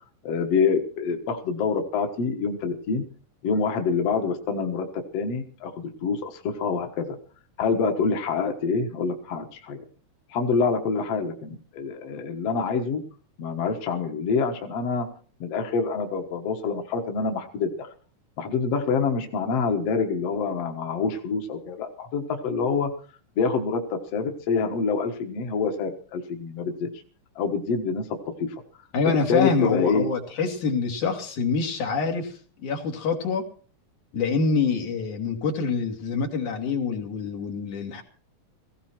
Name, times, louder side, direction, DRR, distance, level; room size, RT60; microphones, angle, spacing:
voice 1, 0.2-3.0 3.4-4.9 5.1-7.2 7.6-9.8 10.3-13.0 13.4-15.1 15.4-17.9 18.4-22.9 23.4-26.9 27.4-28.1 28.4-28.6 29.0-30.1, left 5 dB, 55° left, 4 dB, 2.4 m, -26 dB
voice 2, 28.9-33.5 34.1-38.0, left 4 dB, 75° left, 2 dB, 3.9 m, -26 dB
18.0 x 16.5 x 4.5 m, 0.41 s
omnidirectional pair, 3.5 m